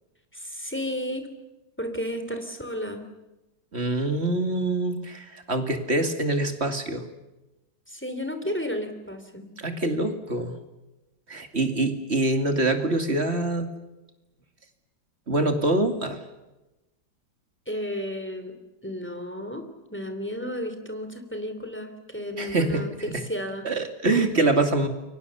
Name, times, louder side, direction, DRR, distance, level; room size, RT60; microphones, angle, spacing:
voice 1, 0.3-1.3 1.8-3.0 7.9-9.5 17.7-18.5 18.8-19.6 19.9-23.7, equal, 5° left, 7 dB, 3.1 m, -33 dB
voice 2, 3.7-7.1 9.6-10.6 11.3-13.7 15.3-16.2 22.4-22.9 23.1-23.2 23.6-24.9, right 2 dB, 35° right, 6 dB, 2.7 m, -25 dB
29.5 x 23.5 x 7.0 m, 1.0 s
omnidirectional pair, 2.0 m